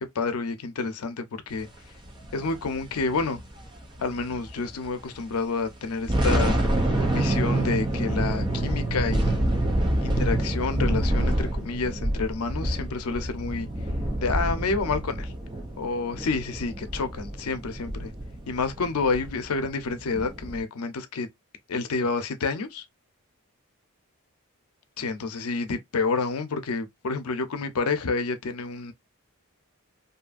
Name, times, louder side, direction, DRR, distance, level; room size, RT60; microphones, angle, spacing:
voice 1, 0.2-1.7 2.3-3.4 4.0-6.6 7.1-9.4 10.0-13.7 14.2-15.3 15.8-18.1 18.5-21.3 21.7-22.8 25.0-28.9, left 4 dB, 85° left, 0.6 m, -29 dB
sound 1, 2.0-4.9 5.2-5.3 5.8-20.6, right 1 dB, 20° right, 0.5 m, -27 dB
2.7 x 2.5 x 2.3 m
head